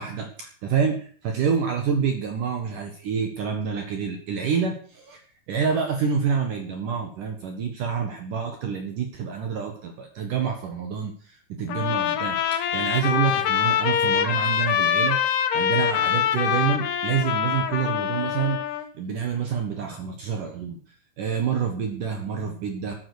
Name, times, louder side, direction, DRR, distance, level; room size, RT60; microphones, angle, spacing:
voice 1, 0.0-5.2 5.5-18.6 19.0-20.8 21.2-22.9, right 6 dB, 60° right, 5 dB, 2.8 m, -27 dB
Trumpet, 11.7-18.9, left 9 dB, 80° left, 3.4 m, -24 dB
13.0 x 11.5 x 6.6 m, 0.44 s
omnidirectional pair, 4.7 m